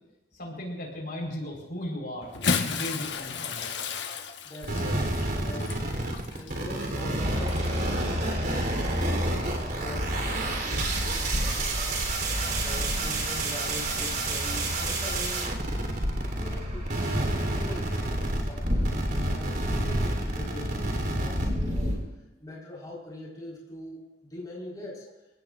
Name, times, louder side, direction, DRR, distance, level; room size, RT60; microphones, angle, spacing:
voice 1, 0.3-2.3 2.6-3.6, left 1 dB, 55° left, 0 dB, 4.5 m, -36 dB
Bathtub (filling or washing) / Splash splatter, 2.2-7.9 8.8-9.0 10.4-10.5, left 5 dB, 80° left, 1.2 m, -33 dB
voice 2, 4.4-5.8 6.3-12.0 12.6-15.7 16.1-22.0 22.4-25.1, left 1 dB, 20° left, -5 dB, 4.6 m, -43 dB
sound 1, 4.6-16.6 16.9-21.5, right 2 dB, 60° right, 3.6 m, -30 dB
sound 2, 7.2-21.9, equal, 45° right, 5.1 m, -31 dB
29.5 x 17.5 x 2.6 m, 1.0 s
head